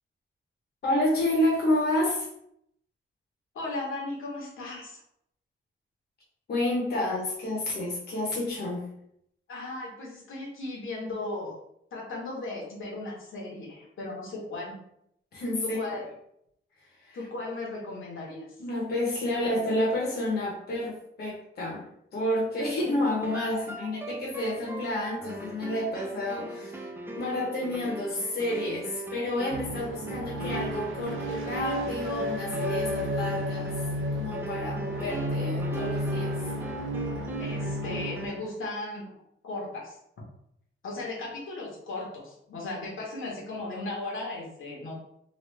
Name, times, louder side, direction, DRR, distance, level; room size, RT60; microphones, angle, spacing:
voice 1, 0.8-2.3 6.5-8.9 15.3-15.8 17.0-17.2 18.6-21.8 22.1-26.9 27.1-33.7 34.1-36.3, left 1 dB, 50° left, -4 dB, 0.8 m, -29 dB
voice 2, 3.5-5.0 9.5-11.6 11.9-14.8 15.6-16.0 17.1-18.5 23.6-23.9 37.4-39.1 39.4-40.0 40.8-45.0, left 2 dB, 75° left, -3 dB, 1.0 m, -36 dB
sound 1, 23.2-38.5, right 2 dB, 10° right, 0.3 m, -40 dB
sound 2, 29.5-38.3, equal, 75° right, 0.5 m, -32 dB
3.0 x 2.4 x 3.2 m, 0.74 s
wide cardioid pair, 170°, 21 cm